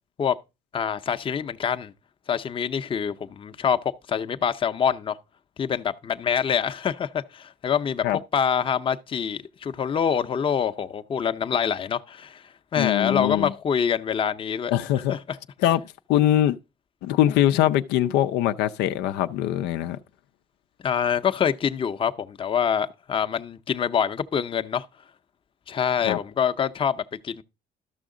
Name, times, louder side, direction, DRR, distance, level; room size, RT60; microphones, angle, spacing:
voice 1, 0.7-1.9 2.3-3.8 4.1-5.2 5.6-8.1 8.3-12.4 12.7-14.7 15.1-15.2 20.8-24.9 25.7-27.4, left 7 dB, 30° left, 0.6 m, -25 dB
voice 2, 12.8-13.5 14.7-15.2 15.6-16.6 17.0-20.0 26.0-26.2, left 12 dB, 90° left, 0.5 m, -22 dB
12.5 x 6.2 x 3.7 m
cardioid pair, 110°, 17 cm